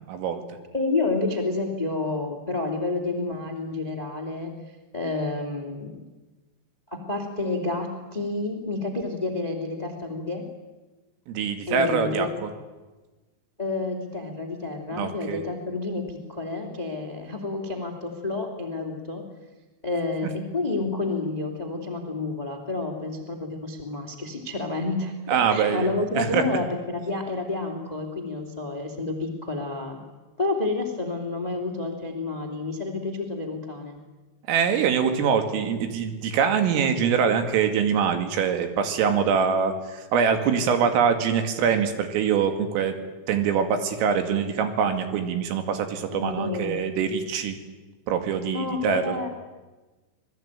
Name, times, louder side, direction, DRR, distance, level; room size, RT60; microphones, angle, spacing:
voice 1, 0.1-0.4 11.3-12.5 15.0-15.4 25.3-25.9 26.1-26.4 34.5-42.9 43.3-47.6 48.1-49.2, right 7 dB, 80° right, 7 dB, 4.8 m, -24 dB
voice 2, 0.7-4.5 4.9-5.9 6.9-10.4 11.7-12.3 13.6-19.2 19.8-30.0 30.4-34.0 46.1-46.8 48.5-49.3, left 3 dB, 25° left, 4 dB, 0.9 m, -29 dB
26.5 x 20.5 x 9.0 m, 1.2 s
omnidirectional pair, 5.8 m